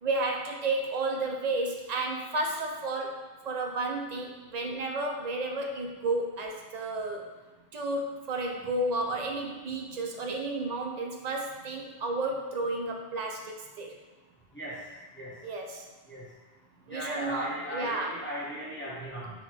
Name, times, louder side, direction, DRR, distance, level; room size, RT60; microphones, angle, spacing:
voice 1, 0.0-7.2 7.7-13.9 15.4-15.9 16.9-18.1, right 2 dB, 50° right, 1 dB, 0.6 m, -32 dB
voice 2, 16.9-19.3, equal, 10° left, -8 dB, 1.1 m, -37 dB
3.8 x 3.0 x 4.4 m, 1.2 s
omnidirectional pair, 1.0 m